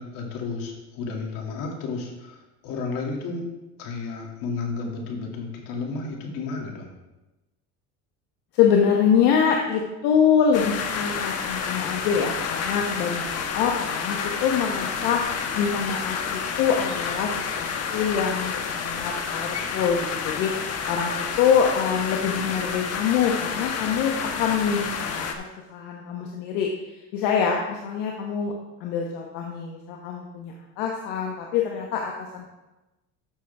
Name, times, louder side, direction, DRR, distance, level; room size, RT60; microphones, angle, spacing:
voice 1, 0.0-3.5 3.8-6.9, left 4 dB, 65° left, 0 dB, 2.6 m, -32 dB
voice 2, 8.5-15.2 15.6-25.4 25.7-26.7 27.1-32.5, left 7 dB, 80° left, 0 dB, 1.3 m, -25 dB
sound 1, 10.5-25.3, left 6 dB, 45° left, 1.1 m, -29 dB
12.5 x 6.5 x 3.5 m, 1.0 s
cardioid pair, 120°, 35 cm